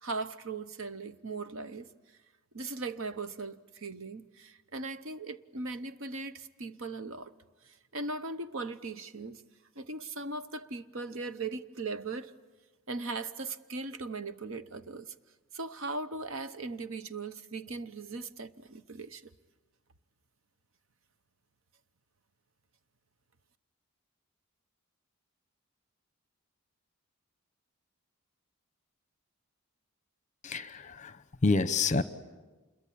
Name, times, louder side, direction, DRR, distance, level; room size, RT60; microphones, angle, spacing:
voice 1, 0.0-1.9 2.5-7.3 7.7-9.4 9.8-12.3 12.9-15.1 15.5-19.3, right 3 dB, 60° right, 0.9 m, -39 dB
voice 2, 30.4-32.0, left 3 dB, 35° left, 0.8 m, -28 dB
27.5 x 22.5 x 8.7 m
head